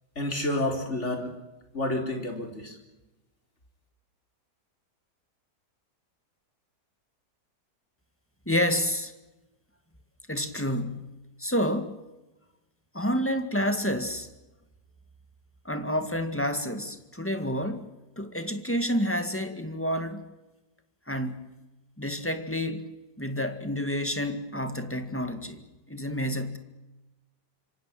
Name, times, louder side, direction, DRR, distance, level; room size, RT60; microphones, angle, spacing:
voice 1, 0.2-1.3 1.7-2.8, left 1 dB, 40° left, 4 dB, 4.6 m, -29 dB
voice 2, 8.5-9.1 10.3-11.1 11.4-12.0 12.9-14.3 15.6-17.9 18.2-20.2 21.1-21.4 22.0-22.8 23.2-25.6 25.9-26.6, equal, 5° left, 8 dB, 2.1 m, -29 dB
26.5 x 24.5 x 7.7 m, 1.0 s
omnidirectional pair, 1.8 m